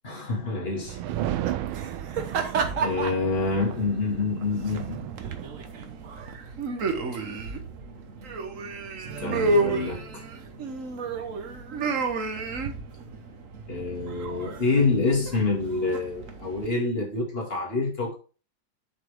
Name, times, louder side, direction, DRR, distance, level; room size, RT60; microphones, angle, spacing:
voice 1, 0.0-1.0 2.7-5.1 9.2-10.3 13.7-18.1, left 3 dB, 30° left, 2.5 m, -27 dB
sound 1, 0.8-6.3, right 13 dB, 80° right, 1.4 m, -35 dB
sound 2, 1.1-16.7, right 3 dB, 50° right, 1.1 m, -32 dB
7.1 x 6.1 x 3.6 m
omnidirectional pair, 2.3 m